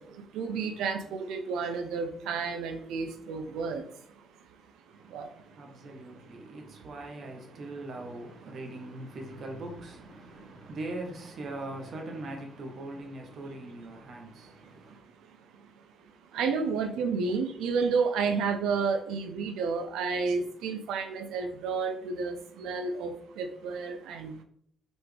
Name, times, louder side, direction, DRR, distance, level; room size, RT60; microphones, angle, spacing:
voice 1, 0.0-4.3 4.9-5.4 10.4-10.5 14.4-14.5 14.8-15.7 16.3-24.4, right 5 dB, 85° right, 0.6 m, -31 dB
voice 2, 4.9-15.0, right 2 dB, 55° right, 1.1 m, -41 dB
4.1 x 3.4 x 3.4 m
cardioid pair, 90°, 0 cm